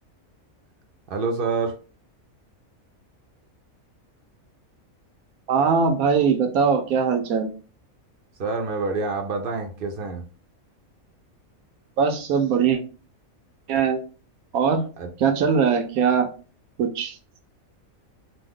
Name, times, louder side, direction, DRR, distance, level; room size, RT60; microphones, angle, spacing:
voice 1, 1.1-1.8 8.4-10.2 15.0-15.1, right 4 dB, 55° right, 4 dB, 0.6 m, -27 dB
voice 2, 5.5-7.5 12.0-12.8 13.7-14.0 14.5-14.8 15.2-16.3 16.8-17.2, right 6 dB, 85° right, 5 dB, 1.1 m, -21 dB
3.0 x 2.1 x 3.6 m, 0.36 s
omnidirectional pair, 1.5 m